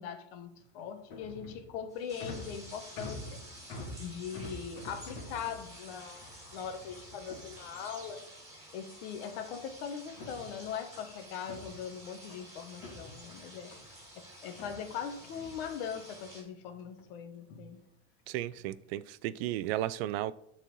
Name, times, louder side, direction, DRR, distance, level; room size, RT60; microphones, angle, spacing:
voice 1, 0.0-3.4 4.0-8.2 8.7-13.7 14.2-17.8, left 7 dB, 90° left, 1.3 m, -41 dB
sound 1, 0.6-8.1 9.2-9.7 10.0-12.5 12.8-14.0 14.5-16.2 16.6-17.1 17.4-17.8 18.5-18.8 19.4-19.7, left 1 dB, 60° left, 2.0 m, -48 dB
sound 2, 1.9-16.4, right 1 dB, 10° right, 2.6 m, -51 dB
sound 3, 6.5-8.4 9.5-9.7 10.7-10.9 13.7-13.8 18.7-18.8 19.2-19.5, right 6 dB, 25° right, 1.0 m, -59 dB
voice 2, 18.3-20.3, right 14 dB, 85° right, 0.5 m, -34 dB
7.4 x 4.2 x 5.3 m
cardioid pair, 165°, 30 cm